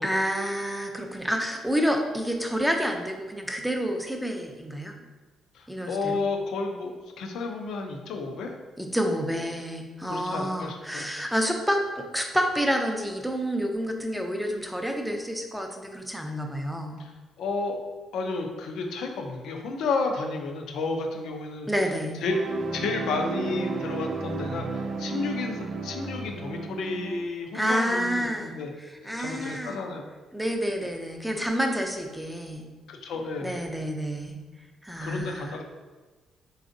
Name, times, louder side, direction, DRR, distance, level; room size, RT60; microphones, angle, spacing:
voice 1, 0.0-4.9 5.7-6.2 8.8-16.9 21.7-22.1 27.5-28.6 29.0-29.8 30.3-32.7 33.4-34.4 34.8-35.6, equal, ahead, 3 dB, 0.5 m, -28 dB
voice 2, 5.5-8.6 9.3-9.6 10.0-11.1 17.0-17.1 17.4-17.8 18.1-21.7 22.2-22.4 22.7-28.7 29.0-30.1 32.9-33.6 35.0-35.6, left 3 dB, 80° left, 3 dB, 0.5 m, -32 dB
sound 1, 22.3-27.3, right 4 dB, 55° right, 0.5 m, -33 dB
4.0 x 3.3 x 2.6 m, 1.3 s
cardioid pair, 90°, 0 cm